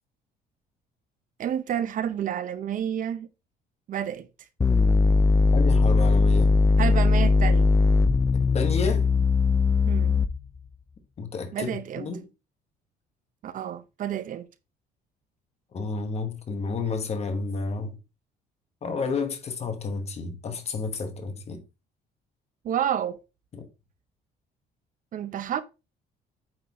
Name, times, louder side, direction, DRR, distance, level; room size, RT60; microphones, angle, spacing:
voice 1, 1.4-3.3 3.9-4.3 6.8-7.7 9.9-10.2 11.5-12.2 13.4-14.5 22.6-23.2 25.1-25.6, right 9 dB, 50° right, 0.7 m, -29 dB
sound 1, 4.6-10.6, left 4 dB, 15° left, 0.5 m, -20 dB
voice 2, 5.5-6.5 8.3-9.0 11.2-11.7 12.0-12.3 15.7-18.0 18.8-21.6 23.5-23.7, left 4 dB, 40° left, 1.4 m, -31 dB
8.8 x 4.0 x 3.0 m
cardioid pair, 110°, 17 cm